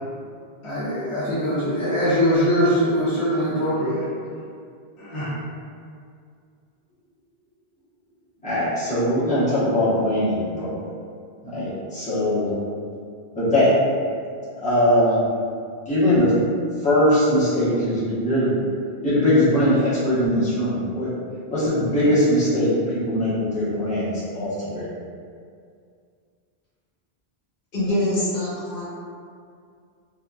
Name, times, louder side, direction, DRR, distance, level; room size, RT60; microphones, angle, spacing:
voice 1, 0.6-4.1 5.0-5.3, equal, 40° left, -10 dB, 0.5 m, -22 dB
voice 2, 8.4-10.7 11.4-12.5 13.3-13.7 14.6-15.2 15.9-16.3 16.8-18.5 19.0-21.1 21.5-24.9, left 1 dB, 10° left, -13 dB, 0.9 m, -21 dB
voice 3, 27.7-28.8, left 1 dB, 65° left, -10 dB, 1.2 m, -24 dB
2.7 x 2.5 x 2.3 m, 2.2 s
omnidirectional pair, 1.1 m